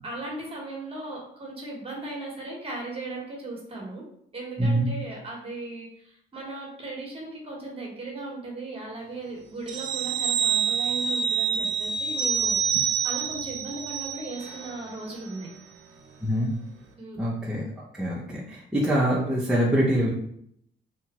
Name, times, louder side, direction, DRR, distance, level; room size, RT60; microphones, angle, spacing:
voice 1, 0.0-4.0 4.3-15.5 17.0-17.2, right 2 dB, 30° right, -2 dB, 1.1 m, -37 dB
sound 1, 9.7-14.8 15.1-15.3, right 7 dB, 75° right, 0.5 m, -27 dB
voice 2, 17.2-20.1, right 1 dB, 5° right, -6 dB, 0.6 m, -25 dB
2.9 x 2.3 x 3.0 m, 0.68 s
cardioid pair, 90°, 20 cm